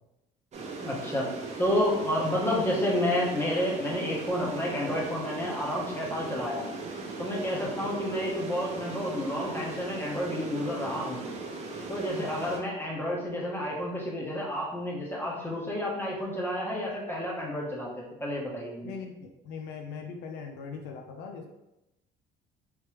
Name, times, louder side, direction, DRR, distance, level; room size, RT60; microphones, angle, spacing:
sound 1, 0.5-12.6, right 3 dB, 45° right, 0.7 m, -39 dB
voice 1, 0.8-1.2 1.6-6.7 7.2-11.2 11.9-18.9, left 1 dB, 15° left, -4 dB, 1.1 m, -30 dB
voice 2, 7.6-8.0 12.1-12.3 18.8-21.5, left 5 dB, 85° left, 3 dB, 0.5 m, -41 dB
3.3 x 3.0 x 3.1 m, 0.92 s
cardioid pair, 110°, 17 cm